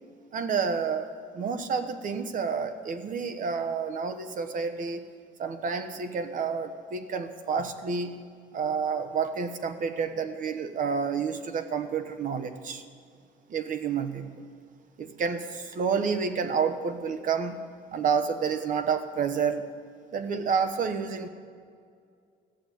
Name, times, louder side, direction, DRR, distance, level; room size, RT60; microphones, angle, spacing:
voice 1, 0.3-5.0 5.4-8.2 8.5-12.8 13.5-14.4 15.0-17.6 17.9-19.6 20.1-21.3, right 6 dB, 50° right, 9 dB, 1.0 m, -29 dB
14.0 x 6.9 x 9.2 m, 2.2 s
cardioid pair, 110°, 17 cm